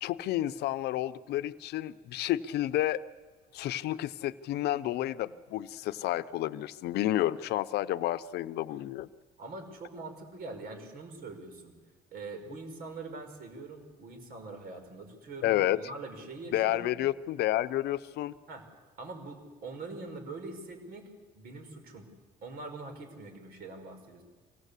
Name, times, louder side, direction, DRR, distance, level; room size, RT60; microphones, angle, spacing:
voice 1, 0.0-3.0 3.5-9.1 15.4-15.8 16.5-18.3, left 14 dB, 75° left, 14 dB, 0.8 m, -30 dB
voice 2, 9.4-11.7 12.1-16.9 18.5-18.6 19.0-22.1 22.4-24.2, right 3 dB, 65° right, 5 dB, 5.4 m, -43 dB
25.0 x 18.0 x 8.4 m, 1.3 s
cardioid pair, 110°, 17 cm